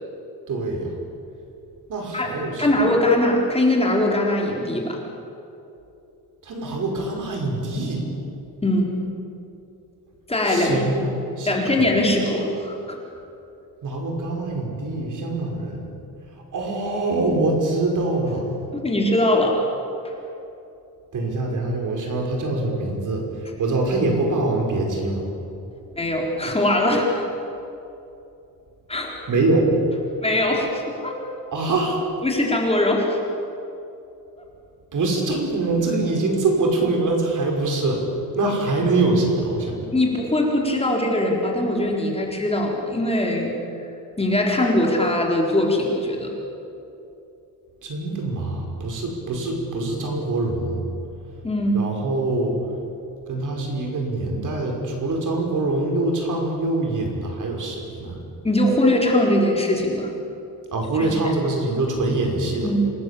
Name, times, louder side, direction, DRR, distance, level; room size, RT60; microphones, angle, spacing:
voice 1, 0.5-0.9 1.9-2.8 6.4-8.0 10.4-11.9 13.8-15.9 16.5-18.5 21.1-25.2 29.3-29.7 31.5-32.0 34.9-38.0 38.4-39.9 47.8-50.8 51.7-52.6 53.3-58.2 60.7-62.7, right 2 dB, 55° right, 1 dB, 5.6 m, -24 dB
voice 2, 2.6-5.0 8.6-8.9 10.3-10.8 11.5-13.0 18.7-19.6 20.0-20.1 25.9-27.1 28.9-29.2 30.2-31.2 32.2-33.2 34.4-34.5 39.8-43.5 44.2-46.3 51.4-51.8 58.4-60.1 61.0-61.1 62.6-62.8, left 1 dB, 15° left, -1 dB, 4.1 m, -21 dB
28.0 x 20.0 x 8.6 m, 2.8 s
cardioid pair, 145°, 36 cm